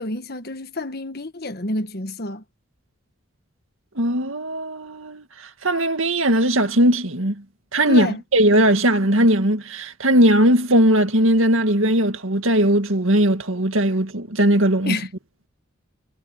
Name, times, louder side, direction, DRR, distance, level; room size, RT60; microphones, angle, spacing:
voice 1, 0.0-2.4 7.9-8.2 14.8-15.1, left 2 dB, 45° left, 1.5 m, -29 dB
voice 2, 4.0-5.2 5.6-7.4 7.7-8.1 8.3-15.0, right 1 dB, 70° right, 2.2 m, -18 dB
head